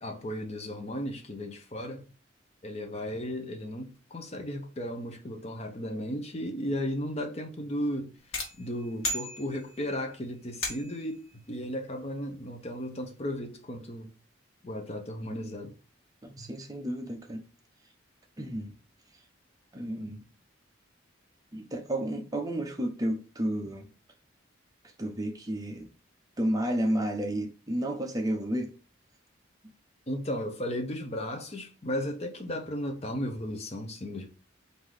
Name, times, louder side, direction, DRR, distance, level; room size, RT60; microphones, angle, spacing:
voice 1, 0.0-2.0 2.6-8.2 8.6-14.1 14.6-15.8 16.4-16.5 30.1-34.3, equal, 30° left, 0.7 m, -35 dB
sound 1, 8.3-10.0 10.6-11.2, left 1 dB, 80° left, 1.4 m, -35 dB
voice 2, 16.2-17.4 18.4-18.7 19.7-20.2 21.5-23.9 25.0-25.9 26.4-28.7, right 1 dB, 20° right, 0.6 m, -31 dB
3.8 x 2.7 x 4.7 m
head